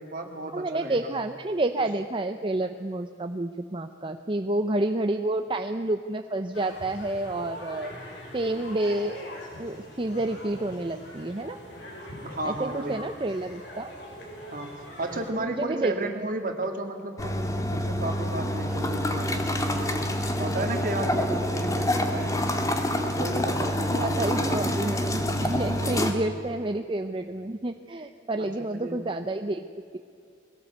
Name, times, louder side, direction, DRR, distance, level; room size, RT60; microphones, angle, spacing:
voice 1, 0.0-1.1 12.2-13.0 14.5-20.1 20.4-22.4 23.0-24.6 25.8-25.9 28.4-29.1, right 1 dB, 50° right, 4 dB, 2.2 m, -33 dB
voice 2, 0.5-7.9 8.3-9.2 9.6-11.6 12.4-13.9 15.4-15.9 23.9-29.6, right 2 dB, 30° right, 6 dB, 0.7 m, -29 dB
sound 1, 6.5-15.3, left 1 dB, 85° left, 5.6 m, -43 dB
sound 2, 17.2-26.1, left 1 dB, 20° left, 1.7 m, -27 dB
22.0 x 17.0 x 8.0 m, 2.4 s
head